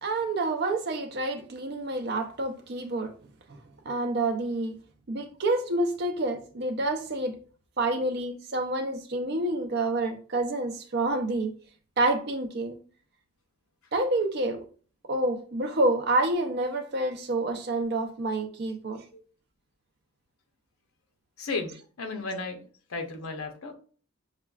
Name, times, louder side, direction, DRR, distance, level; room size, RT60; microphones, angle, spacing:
voice 1, 0.0-3.1 3.9-4.7 5.1-7.3 7.8-11.5 12.0-12.8 13.9-14.6 15.1-19.0, right 2 dB, 50° right, 5 dB, 0.5 m, -28 dB
voice 2, 21.4-22.6 22.9-23.8, left 3 dB, 80° left, 4 dB, 0.6 m, -34 dB
5.6 x 2.2 x 2.3 m, 0.41 s
head